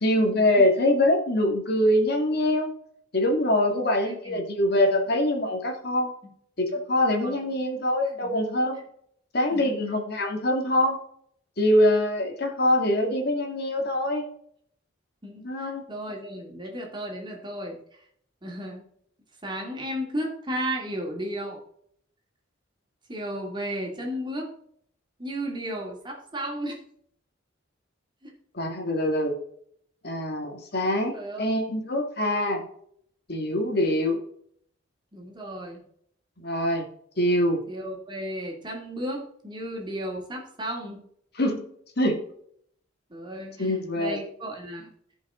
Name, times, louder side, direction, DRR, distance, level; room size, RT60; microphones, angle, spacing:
voice 1, 0.0-2.7 3.1-6.1 6.6-8.8 9.3-11.0 11.6-14.3 15.4-15.9 28.5-29.4 30.0-32.6 33.3-34.2 36.4-36.9 37.2-37.6 41.4-41.6 42.0-42.2 43.6-44.2, left 1 dB, 55° left, 3 dB, 1.9 m, -24 dB
voice 2, 4.0-4.4 7.2-7.4 8.2-8.4 9.5-9.7 15.2-17.8 18.4-18.8 19.4-21.6 23.1-24.5 25.2-26.8 28.2-28.3 31.1-31.4 35.1-35.8 37.7-41.1 43.1-44.9, equal, 25° right, 0 dB, 2.5 m, -34 dB
16.0 x 5.4 x 3.8 m, 0.65 s
head